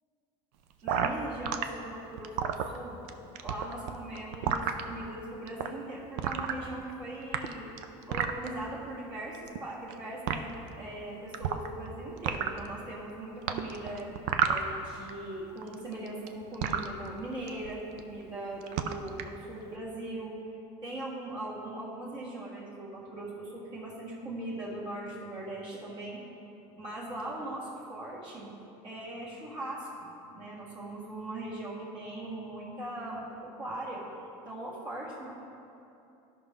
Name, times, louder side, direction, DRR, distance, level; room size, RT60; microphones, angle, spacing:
voice 1, 0.8-3.0 3.4-7.7 8.1-14.1 14.4-20.3 20.8-26.2 26.7-28.5 28.8-34.0 34.5-35.3, right 1 dB, 40° right, -6 dB, 1.7 m, -40 dB
sound 1, 0.9-1.6 2.2-3.1 3.3-4.8 5.5-5.7 6.2-6.9 7.2-8.5 9.3-9.9 10.3-10.4 11.3-11.9 12.2-12.7 13.5-15.1 15.4-16.9 17.5-17.7 18.0-18.3 18.6-19.3, right 8 dB, 65° right, 0.6 m, -30 dB
14.5 x 5.6 x 3.6 m, 2.8 s
cardioid pair, 155°, 13 cm